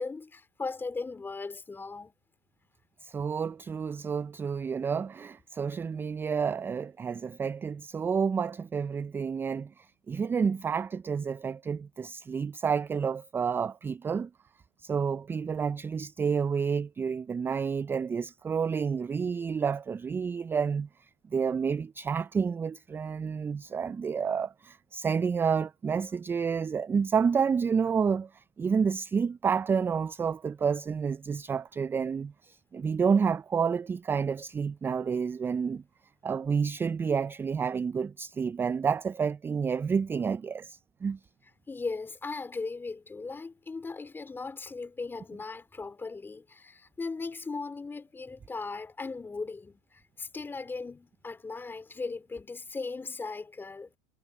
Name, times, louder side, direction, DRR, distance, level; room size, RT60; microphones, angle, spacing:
voice 1, 0.0-2.1 41.7-53.9, left 4 dB, 15° left, 3.0 m, -38 dB
voice 2, 3.0-14.3 14.8-20.9 21.3-35.8 36.2-41.2, right 6 dB, 15° right, 0.3 m, -29 dB
supercardioid pair, 105°, 14 cm